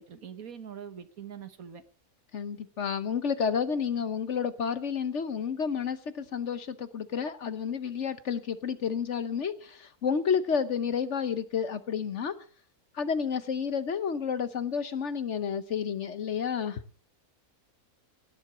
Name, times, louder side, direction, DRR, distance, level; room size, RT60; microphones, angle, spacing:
voice 1, 0.0-1.8, right 8 dB, 65° right, 1.7 m, -43 dB
voice 2, 2.3-12.3 12.9-16.8, left 6 dB, 55° left, 1.1 m, -30 dB
18.0 x 7.9 x 7.2 m
omnidirectional pair, 1.6 m